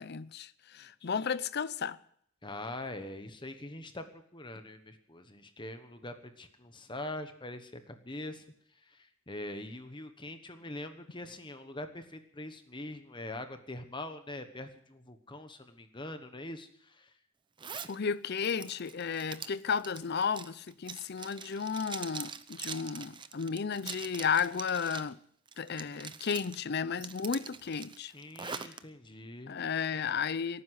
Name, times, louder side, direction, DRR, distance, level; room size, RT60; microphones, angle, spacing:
voice 1, 0.0-2.0 17.9-25.2 25.6-28.1 28.5-28.7 29.5-30.6, left 6 dB, 50° left, 0.6 m, -33 dB
voice 2, 2.4-8.4 8.7-17.2 28.1-29.6, left 1 dB, 25° left, 1.2 m, -43 dB
Zipper (clothing), 17.6-17.9 18.4-25.1 25.5-26.6 27.0-28.8, right 6 dB, 25° right, 0.6 m, -43 dB
17.5 x 9.6 x 8.0 m
head